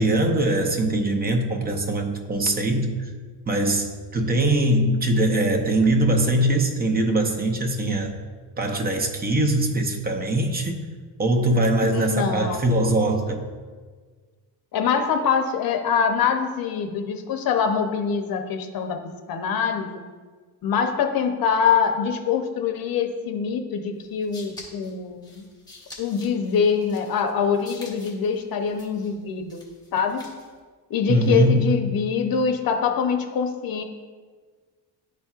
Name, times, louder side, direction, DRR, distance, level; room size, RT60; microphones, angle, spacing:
voice 1, 0.0-3.1 3.5-8.1 8.6-10.8 11.2-13.4 31.1-31.8, right 1 dB, 25° right, 3 dB, 0.7 m, -22 dB
voice 2, 11.9-12.7 14.7-20.0 20.6-25.4 26.0-29.6 29.9-30.3 30.9-33.8, left 6 dB, 60° left, 5 dB, 0.8 m, -24 dB
sound 1, 24.0-30.6, left 2 dB, 10° left, 1.3 m, -47 dB
11.5 x 4.2 x 2.4 m, 1.5 s
cardioid pair, 130°, 40 cm